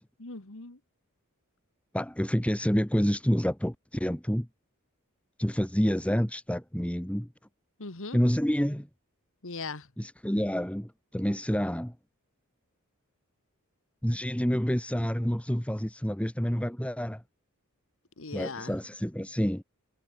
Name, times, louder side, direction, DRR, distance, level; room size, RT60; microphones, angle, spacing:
voice 1, 0.2-0.8 7.8-8.2 9.4-9.9 18.2-18.8, left 3 dB, 65° left, 2.0 m, -39 dB
voice 2, 1.9-4.5 5.4-7.3 8.1-8.9 10.0-11.9 14.0-17.2 18.3-19.6, equal, 5° left, 1.8 m, -28 dB
head